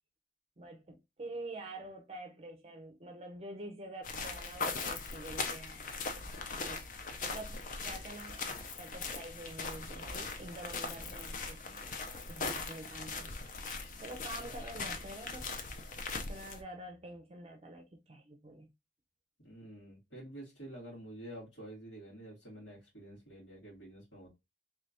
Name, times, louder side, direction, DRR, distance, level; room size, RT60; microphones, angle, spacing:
voice 1, 0.6-5.8 6.5-6.9 7.2-8.5 8.8-11.8 12.3-15.6 16.1-18.7, right 1 dB, 35° right, 0.5 m, -47 dB
sound 1, 4.0-16.6, left 4 dB, 45° left, 0.6 m, -40 dB
voice 2, 19.4-24.3, right 1 dB, 85° left, 2.4 m, -49 dB
3.6 x 3.3 x 2.5 m
head